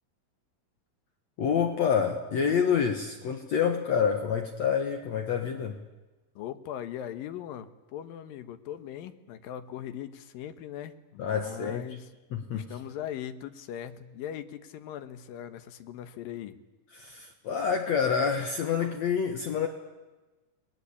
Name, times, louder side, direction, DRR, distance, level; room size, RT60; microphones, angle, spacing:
voice 1, 1.4-5.8 11.2-11.8 12.3-12.7 16.9-19.7, left 7 dB, 60° left, 5 dB, 2.4 m, -27 dB
voice 2, 6.4-12.1 12.5-16.6, left 10 dB, 80° left, 10 dB, 3.0 m, -40 dB
30.0 x 20.5 x 8.5 m, 1.2 s
omnidirectional pair, 4.0 m